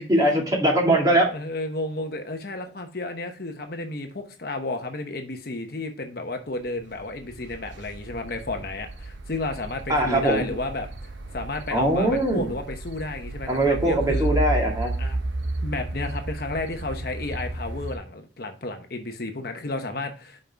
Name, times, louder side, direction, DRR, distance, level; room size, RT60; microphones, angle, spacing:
voice 1, 0.1-1.3 9.9-10.5 11.7-12.5 13.5-14.9, right 1 dB, 20° right, -1 dB, 2.1 m, -21 dB
voice 2, 1.3-10.9 11.3-14.3 15.0-15.2 15.6-20.4, left 2 dB, 50° left, 5 dB, 0.9 m, -32 dB
sound 1, 6.7-18.0, right 2 dB, 80° right, 1.0 m, -32 dB
5.7 x 5.4 x 5.1 m, 0.38 s
head